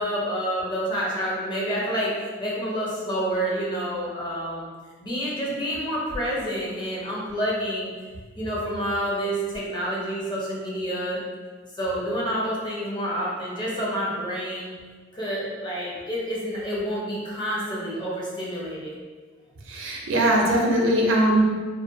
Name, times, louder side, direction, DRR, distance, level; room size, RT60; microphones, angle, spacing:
voice 1, 0.0-4.7 5.0-7.9 8.3-11.2 11.8-14.7 15.1-18.9, equal, 25° left, -5 dB, 0.6 m, -28 dB
voice 2, 19.7-21.4, right 1 dB, 75° right, -1 dB, 0.5 m, -20 dB
2.5 x 2.2 x 2.6 m, 1.5 s
head